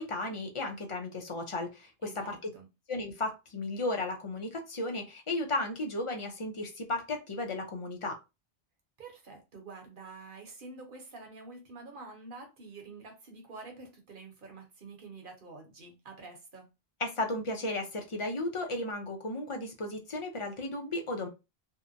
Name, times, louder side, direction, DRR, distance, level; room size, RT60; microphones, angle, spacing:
voice 1, 0.0-2.4 2.9-8.2 17.0-21.3, left 2 dB, 40° left, 0.5 m, -34 dB
voice 2, 2.0-2.7 9.0-16.7, right 3 dB, 55° right, 0.9 m, -48 dB
2.7 x 2.1 x 2.4 m
omnidirectional pair, 1.1 m